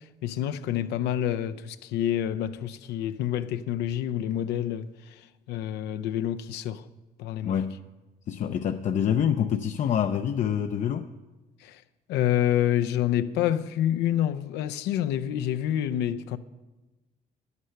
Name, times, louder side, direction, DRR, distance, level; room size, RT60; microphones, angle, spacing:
voice 1, 0.0-6.8 7.2-7.6 11.6-11.8 12.1-16.4, left 11 dB, 85° left, 0.6 m, -28 dB
voice 2, 7.4-7.8 8.3-11.1, left 9 dB, 45° left, 0.5 m, -26 dB
11.5 x 9.6 x 5.8 m
cardioid pair, 110°, 17 cm